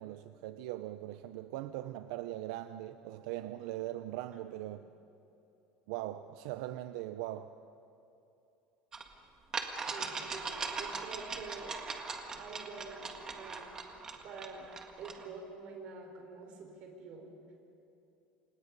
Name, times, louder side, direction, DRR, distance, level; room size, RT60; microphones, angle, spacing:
voice 1, 0.0-4.8 5.9-7.5, right 14 dB, 75° right, 10 dB, 0.7 m, -40 dB
sound 1, 8.9-9.0 9.5-15.3, right 4 dB, 20° right, 1.8 m, -40 dB
voice 2, 9.9-11.8 12.3-13.8 14.2-14.7 14.9-17.3, right 4 dB, 40° right, 2 dB, 5.3 m, -47 dB
29.0 x 26.5 x 5.4 m, 2.8 s
cardioid pair, 170°, 3 cm